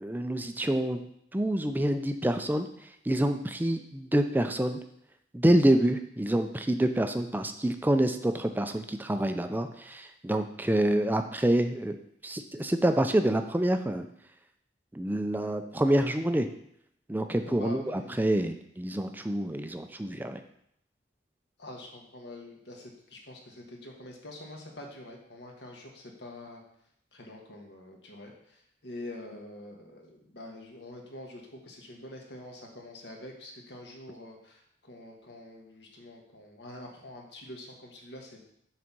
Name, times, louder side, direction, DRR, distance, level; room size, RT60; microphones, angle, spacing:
voice 1, 0.0-1.0 1.3-2.7 3.1-4.8 5.3-12.0 12.2-14.0 14.9-16.5 17.1-20.4, right 1 dB, 10° right, 7 dB, 0.4 m, -27 dB
voice 2, 17.4-18.1 21.6-26.6 27.1-38.4, left 1 dB, 70° left, 0 dB, 1.5 m, -45 dB
6.2 x 4.1 x 6.0 m, 0.74 s
head